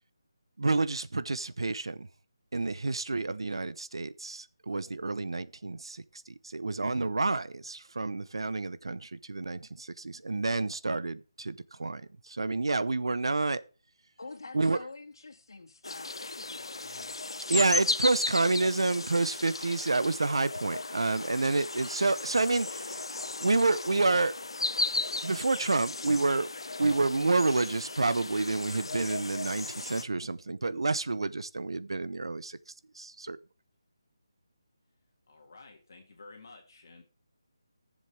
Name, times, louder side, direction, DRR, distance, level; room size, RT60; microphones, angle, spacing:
voice 1, 0.6-2.1 2.5-13.6 14.5-14.8 17.5-22.9 23.4-24.3 25.2-26.5 26.8-32.6 33.0-33.4, right 3 dB, 80° right, 0.8 m, -29 dB
voice 2, 14.2-17.2, left 3 dB, 65° left, 2.1 m, -47 dB
sound 1, 15.8-30.0, left 3 dB, 85° left, 0.8 m, -36 dB
voice 3, 35.3-37.0, left 3 dB, 45° left, 2.0 m, -52 dB
15.0 x 7.4 x 3.4 m
hypercardioid pair, 175°, 3 cm